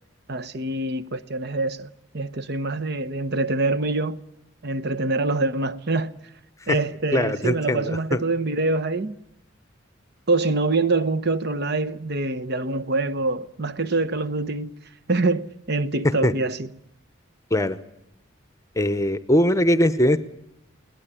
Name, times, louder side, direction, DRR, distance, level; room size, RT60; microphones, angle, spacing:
voice 1, 0.3-4.2 4.6-6.1 6.7-9.2 10.3-14.8 15.1-16.7, right 3 dB, 50° right, 0.9 m, -25 dB
voice 2, 7.1-8.2 16.2-16.3 17.5-17.8 18.8-20.2, left 1 dB, 15° left, 0.8 m, -21 dB
21.5 x 19.0 x 10.0 m
head